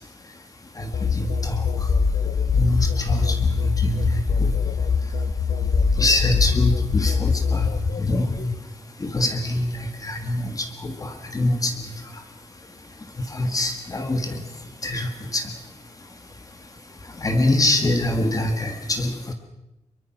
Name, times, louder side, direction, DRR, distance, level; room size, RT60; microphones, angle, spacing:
voice 1, 0.8-1.6 2.6-4.5 6.0-7.7 8.0-8.4 9.0-11.7 13.3-14.4 14.8-15.4 17.2-19.3, left 1 dB, 30° left, 6 dB, 1.7 m, -24 dB
sound 1, 0.9-8.6, left 5 dB, 90° left, 2.3 m, -22 dB
24.0 x 23.0 x 6.0 m, 0.92 s
wide cardioid pair, 170°, 12 cm